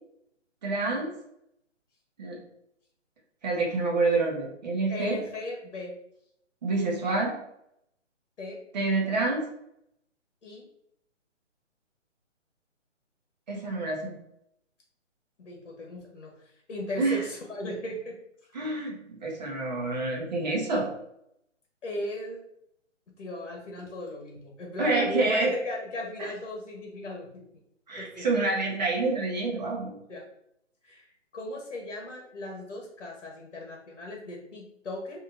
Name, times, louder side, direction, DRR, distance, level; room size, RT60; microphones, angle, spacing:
voice 1, 0.6-1.1 2.2-2.4 3.4-5.2 6.6-7.3 8.7-9.4 13.5-14.1 17.0-17.2 18.5-20.9 24.8-25.5 26.2-26.3 27.9-29.9, right 3 dB, 35° right, -1 dB, 1.0 m, -27 dB
voice 2, 4.9-5.9 8.4-8.6 10.4-10.6 15.4-18.2 21.8-22.4 23.2-27.5 28.0-28.2 30.1-30.2 30.8-35.2, left 1 dB, 65° left, -1 dB, 1.0 m, -37 dB
3.4 x 2.7 x 2.5 m, 0.77 s
hypercardioid pair, 155°, 38 cm